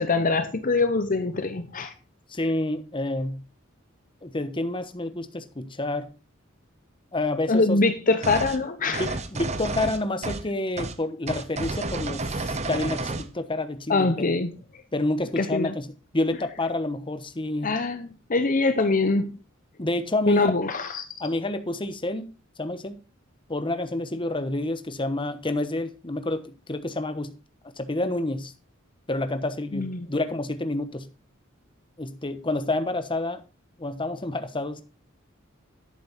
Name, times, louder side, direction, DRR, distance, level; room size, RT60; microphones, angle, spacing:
voice 1, 0.0-1.9 7.5-9.0 13.9-14.5 15.4-15.7 17.6-19.4 20.3-21.0 29.7-30.1, left 3 dB, 40° left, 0.8 m, -23 dB
voice 2, 2.3-3.4 4.2-6.1 7.1-7.8 8.9-14.4 14.9-17.7 19.8-20.5 21.2-22.3 22.6-23.0 23.5-27.3 27.8-28.5 29.1-31.1 32.0-33.4 33.8-34.8, left 2 dB, 25° left, 1.1 m, -29 dB
sound 1, 8.2-8.6 8.9-10.5 10.8-11.0 11.3-13.3, right 3 dB, 35° right, 0.9 m, -31 dB
11.0 x 8.6 x 4.1 m
head